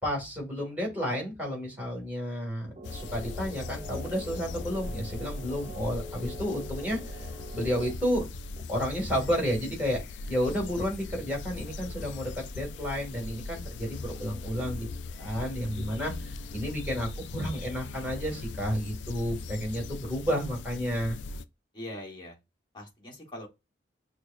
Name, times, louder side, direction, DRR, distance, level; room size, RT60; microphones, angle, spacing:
voice 1, 0.0-7.3 7.5-8.2 8.7-10.0 10.3-14.9 15.2-21.2, equal, 10° right, 1.7 m, -31 dB
sound 1, 2.8-21.4, left 3 dB, 80° left, 0.3 m, -39 dB
sound 2, 2.8-7.9, right 1 dB, 35° right, 0.5 m, -45 dB
voice 2, 21.7-22.4 22.7-23.5, left 1 dB, 25° left, 1.2 m, -41 dB
6.0 x 2.1 x 2.4 m
head